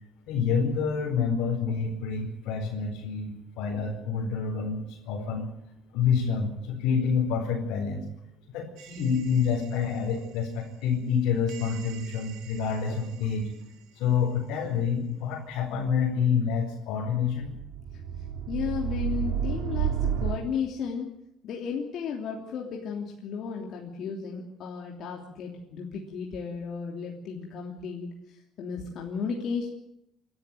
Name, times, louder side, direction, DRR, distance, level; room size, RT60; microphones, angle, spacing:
voice 1, 0.3-5.5 5.9-8.1 8.5-13.5 13.9-17.5, left 6 dB, 85° left, -2 dB, 4.5 m, -28 dB
sound 1, 8.8-9.9 11.5-13.3 17.2-20.4, right 9 dB, 90° right, 2.5 m, -33 dB
voice 2, 18.5-21.1 21.4-28.1 28.6-29.7, left 6 dB, 60° left, -1 dB, 3.2 m, -34 dB
27.5 x 12.5 x 9.2 m, 0.81 s
cardioid pair, 130°, 0 cm